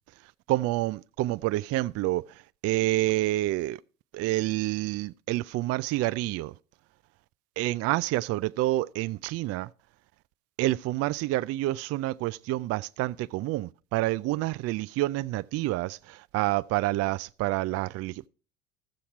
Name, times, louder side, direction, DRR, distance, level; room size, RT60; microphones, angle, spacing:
voice 1, 0.5-3.8 4.1-6.5 7.6-9.7 10.6-18.3, right 17 dB, 40° right, 0.4 m, -28 dB
14.5 x 7.1 x 4.5 m
hypercardioid pair, 80°, 37 cm